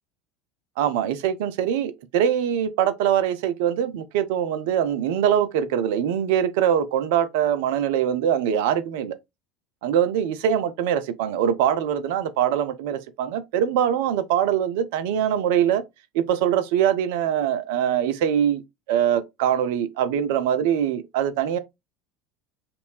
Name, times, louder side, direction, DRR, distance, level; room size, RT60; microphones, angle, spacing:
voice 1, 0.8-9.1 9.8-15.8 16.1-18.6 18.9-21.6, right 9 dB, 70° right, 0.5 m, -23 dB
4.2 x 2.7 x 3.3 m
hypercardioid pair, 80°, 0 cm